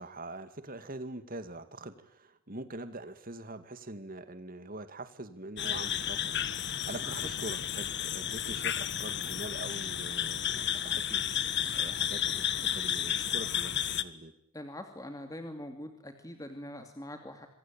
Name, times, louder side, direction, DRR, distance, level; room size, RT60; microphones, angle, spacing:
voice 1, 0.0-11.3 11.7-14.3, right 2 dB, 40° right, 11 dB, 2.3 m, -44 dB
sound 1, 5.6-14.0, left 9 dB, 50° left, 1.5 m, -32 dB
voice 2, 14.5-17.5, left 1 dB, 15° left, 6 dB, 2.6 m, -43 dB
27.5 x 23.5 x 9.1 m, 0.70 s
head